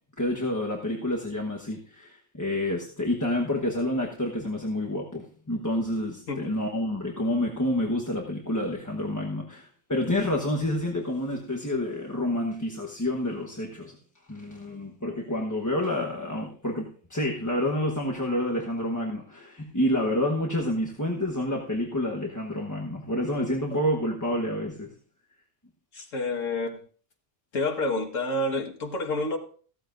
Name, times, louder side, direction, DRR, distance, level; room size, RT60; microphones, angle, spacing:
voice 1, 0.2-13.9 14.3-24.9, left 1 dB, 15° left, -1 dB, 1.1 m, -28 dB
voice 2, 25.9-26.8 27.5-29.4, left 2 dB, 85° left, 3 dB, 1.9 m, -29 dB
15.5 x 13.5 x 2.6 m, 0.43 s
omnidirectional pair, 1.3 m